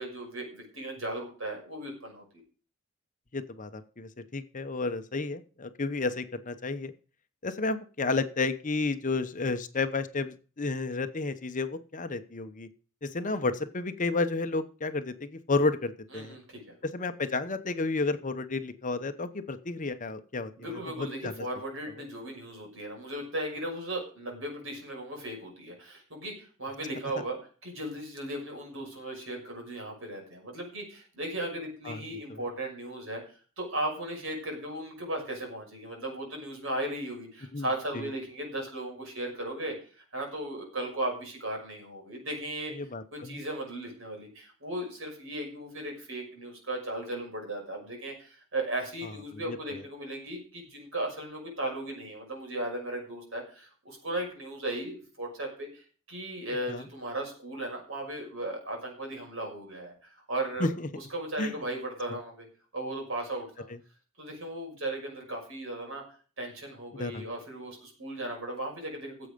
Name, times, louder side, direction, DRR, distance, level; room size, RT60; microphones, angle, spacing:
voice 1, 0.0-2.2 16.1-16.7 20.6-42.7 43.1-60.7 60.9-62.5 62.7-63.7 64.2-66.0 66.4-69.3, right 1 dB, 65° right, 1 dB, 5.9 m, -36 dB
voice 2, 3.3-6.9 7.4-12.7 13.0-16.4 16.8-21.3 31.8-32.0 37.5-37.7 37.9-38.1 42.8-43.4 49.5-49.6 56.7-56.8 60.6-60.9 61.4-61.5 63.7-63.8 66.9-67.3, left 3 dB, 40° left, 10 dB, 0.9 m, -31 dB
15.0 x 7.8 x 5.2 m, 0.39 s
head